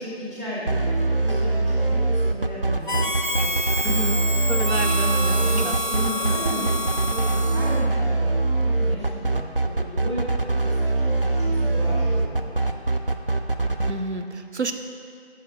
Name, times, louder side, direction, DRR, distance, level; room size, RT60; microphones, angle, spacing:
voice 1, 0.0-4.0 5.1-10.3 10.6-12.7, equal, 25° right, -8 dB, 1.9 m, -34 dB
sound 1, 0.7-13.9, right 2 dB, 55° right, 0.5 m, -22 dB
Harmonica, 2.9-7.9, left 1 dB, 50° left, 0.4 m, -28 dB
voice 2, 3.8-4.2 4.5-5.8 6.5-6.7 13.9-14.7, right 2 dB, 80° right, 6 dB, 0.8 m, -30 dB
8.4 x 7.2 x 4.8 m, 2.3 s
figure-of-eight pair, 180°, 34 cm